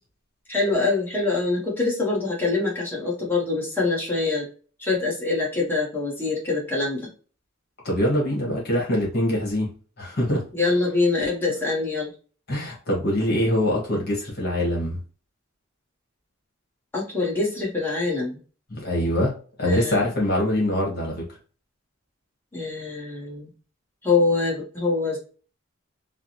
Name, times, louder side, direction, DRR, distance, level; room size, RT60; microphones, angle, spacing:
voice 1, 0.5-4.5 4.8-7.1 10.5-12.1 16.9-18.4 19.6-20.1 22.5-23.5 24.0-25.2, left 3 dB, 10° left, -4 dB, 1.0 m, -24 dB
voice 2, 7.8-9.7 10.0-10.4 12.5-15.0 18.7-19.3 19.6-21.3, left 1 dB, 50° left, -3 dB, 1.3 m, -23 dB
3.4 x 2.0 x 2.7 m, 0.38 s
head